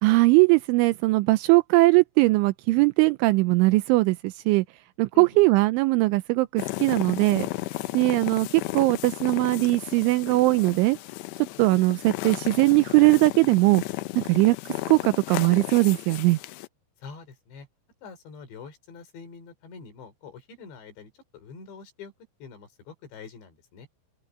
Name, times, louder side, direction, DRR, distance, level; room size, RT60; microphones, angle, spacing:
voice 1, 0.0-4.7 5.0-7.5 7.9-11.0 11.6-13.8 14.2-16.4, right 22 dB, 85° right, 2.9 m, -20 dB
voice 2, 5.1-5.4 17.0-17.7 18.0-22.1 22.4-23.9, left 5 dB, 60° left, 5.9 m, -45 dB
sound 1, 6.6-16.7, left 19 dB, 90° left, 2.5 m, -34 dB
open air
omnidirectional pair, 5.8 m